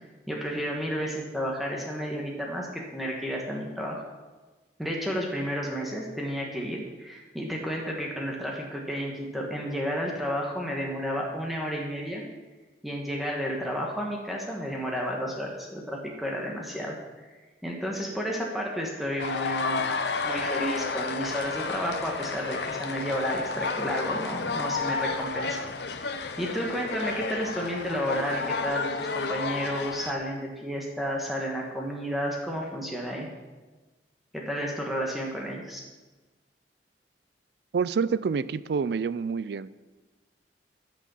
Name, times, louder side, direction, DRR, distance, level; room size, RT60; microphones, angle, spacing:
voice 1, 0.3-4.0 4.8-12.2 12.8-17.3 17.6-19.9 20.2-25.6 25.9-33.3 34.3-35.8, equal, ahead, -2 dB, 1.3 m, -32 dB
sound 1, 19.2-30.1, left 4 dB, 70° left, 0.7 m, -31 dB
voice 2, 37.7-39.7, right 5 dB, 65° right, 17 dB, 0.4 m, -27 dB
10.0 x 6.5 x 6.9 m, 1.2 s
head